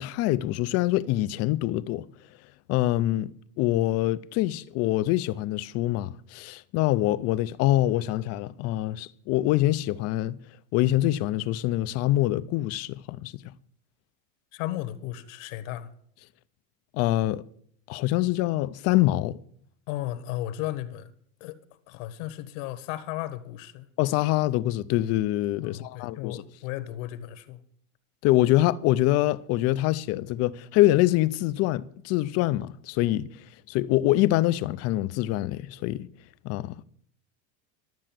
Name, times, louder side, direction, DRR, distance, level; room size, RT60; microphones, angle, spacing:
voice 1, 0.0-2.1 2.7-10.4 10.7-13.5 16.9-17.4 17.9-19.4 24.0-26.4 28.2-36.1 36.4-36.8, left 16 dB, 40° left, 0.4 m, -25 dB
voice 2, 14.5-15.9 19.9-21.1 21.4-21.6 21.9-23.9 25.6-27.6, left 14 dB, 65° left, 1.2 m, -35 dB
12.5 x 7.6 x 7.5 m
supercardioid pair, 150°, 41 cm